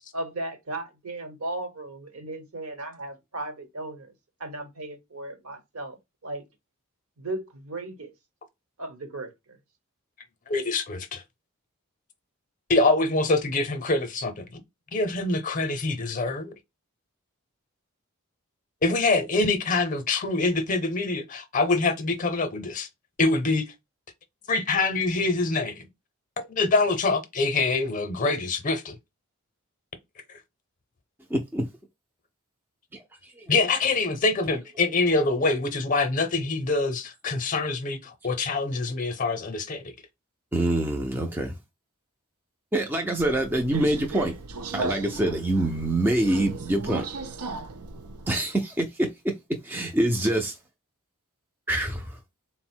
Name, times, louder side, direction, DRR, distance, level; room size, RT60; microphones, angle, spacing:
voice 1, 0.1-4.1 4.4-6.4 7.2-8.1 8.8-9.6, right 2 dB, 70° right, 1.0 m, -36 dB
voice 2, 10.5-11.2 12.7-14.4 14.9-16.5 18.8-22.9 23.2-23.7 24.5-25.9 26.5-29.0 30.3-30.4 33.5-39.9, left 3 dB, 35° left, 0.6 m, -25 dB
voice 3, 31.3-31.7 33.4-33.5 40.5-41.6 42.7-44.3 44.7-47.0 48.3-49.3 49.6-50.6 51.7-52.2, right 1 dB, 10° right, 0.3 m, -25 dB
Subway metro underground, 43.2-48.3, right 3 dB, 90° right, 0.5 m, -36 dB
3.9 x 2.1 x 4.3 m
head